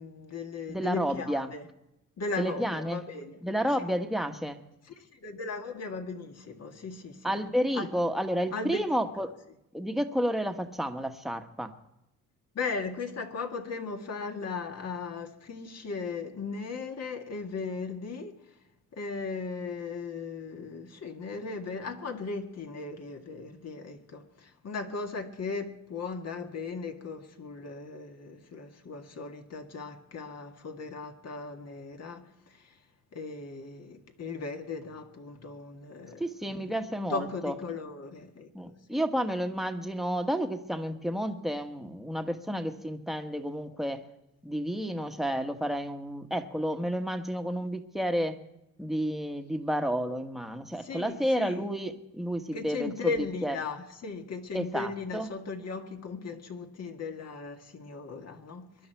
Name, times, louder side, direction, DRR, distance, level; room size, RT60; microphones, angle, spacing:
voice 1, 0.0-1.7 2.2-3.4 5.0-7.4 7.8-7.9 8.5-9.3 12.6-18.4 18.9-32.7 33.1-36.8 37.1-39.0 50.8-51.7 52.5-58.8, left 4 dB, 50° left, 1.8 m, -37 dB
voice 2, 0.7-1.5 2.4-3.0 3.4-4.6 7.2-9.3 9.7-11.7 36.2-37.5 38.5-44.0 44.4-48.4 48.8-53.6 54.5-55.3, equal, ahead, 1.3 m, -31 dB
23.0 x 11.0 x 4.6 m
cardioid pair, 110°, 32 cm